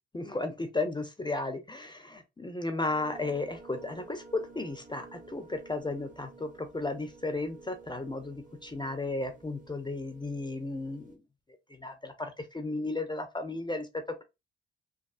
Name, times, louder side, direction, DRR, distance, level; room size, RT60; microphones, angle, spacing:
voice 1, 0.1-11.2 11.7-13.9, left 2 dB, 15° left, 0.6 m, -34 dB
sound 1, 2.9-11.2, right 4 dB, 25° right, 0.9 m, -51 dB
3.2 x 2.3 x 2.4 m
hypercardioid pair, 45°, 29 cm